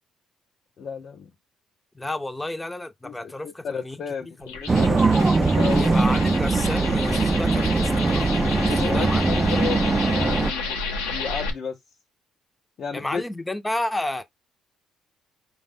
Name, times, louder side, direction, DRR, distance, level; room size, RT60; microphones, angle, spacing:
voice 1, 0.8-1.3 3.0-5.9 8.7-12.0 12.8-13.2, left 6 dB, 55° left, 0.7 m, -33 dB
voice 2, 1.9-4.5 5.8-8.3 8.7-9.2 12.9-14.2, left 1 dB, 15° left, 0.7 m, -31 dB
sound 1, 4.4-11.5, left 4 dB, 85° left, 0.9 m, -31 dB
sound 2, 4.7-10.5, right 3 dB, 25° right, 0.6 m, -21 dB
5.0 x 2.3 x 3.6 m
hypercardioid pair, 50°, 0 cm